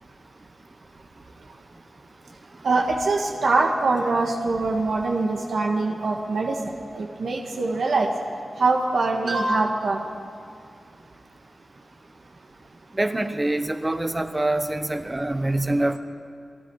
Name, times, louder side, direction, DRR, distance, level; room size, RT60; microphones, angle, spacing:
voice 1, 2.6-6.6 6.9-8.1 8.6-10.0, right 3 dB, 85° right, 0 dB, 1.8 m, -23 dB
voice 2, 12.9-16.0, right 1 dB, 20° right, 9 dB, 1.1 m, -25 dB
29.0 x 19.0 x 4.9 m, 2.3 s
wide cardioid pair, 120°, 0 cm